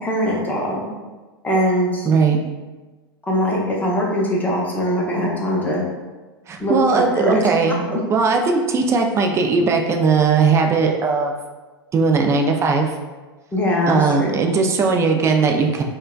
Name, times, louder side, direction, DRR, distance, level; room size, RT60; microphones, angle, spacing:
voice 1, 0.0-0.9 1.4-2.1 3.2-5.9 6.6-7.5 7.9-8.0 13.5-14.4, equal, 15° left, -3 dB, 0.8 m, -21 dB
voice 2, 2.1-2.4 6.5-11.3 11.9-13.0 13.9-15.8, right 4 dB, 20° right, 3 dB, 0.4 m, -18 dB
4.2 x 2.2 x 2.3 m, 1.2 s
figure-of-eight pair, 95°, 13 cm